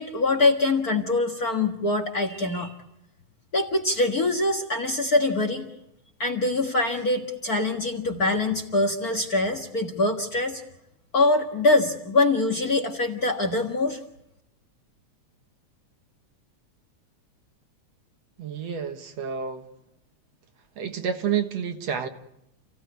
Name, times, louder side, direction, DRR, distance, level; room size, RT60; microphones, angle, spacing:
voice 1, 0.0-2.7 3.5-5.7 6.2-10.6 11.1-14.0, left 2 dB, 35° left, 5 dB, 1.8 m, -24 dB
voice 2, 18.4-19.7 20.8-22.1, right 7 dB, 65° right, 6 dB, 2.5 m, -29 dB
29.0 x 16.5 x 9.5 m, 0.85 s
omnidirectional pair, 3.3 m